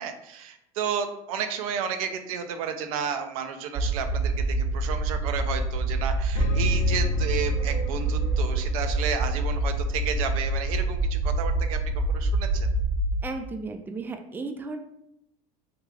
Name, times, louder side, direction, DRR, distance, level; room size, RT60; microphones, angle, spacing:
voice 1, 0.0-11.8 12.1-12.7, right 7 dB, 80° right, 8 dB, 0.5 m, -32 dB
sound 1, 3.8-13.1, right 2 dB, 45° right, 0.9 m, -26 dB
sound 2, 6.3-8.5, left 3 dB, 85° left, 0.5 m, -28 dB
voice 2, 13.2-14.8, right 3 dB, 10° right, 5 dB, 0.3 m, -34 dB
3.2 x 2.4 x 3.4 m, 0.80 s
supercardioid pair, 100°, 18 cm